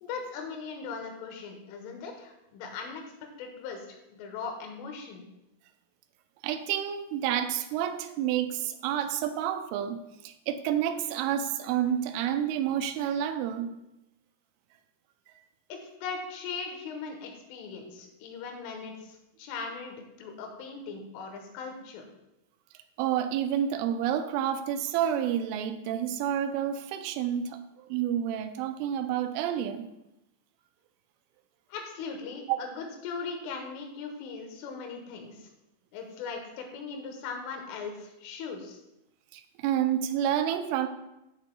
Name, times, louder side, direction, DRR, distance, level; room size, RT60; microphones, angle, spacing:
voice 1, 0.0-3.0 3.4-3.9 4.1-5.3 15.7-22.0 31.7-35.4 35.9-38.8, left 5 dB, 85° left, 3 dB, 3.8 m, -39 dB
voice 2, 6.4-13.7 23.0-29.9 32.5-32.6 39.3-40.9, right 10 dB, 85° right, 7 dB, 3.1 m, -29 dB
13.0 x 7.6 x 2.3 m, 0.90 s
omnidirectional pair, 5.6 m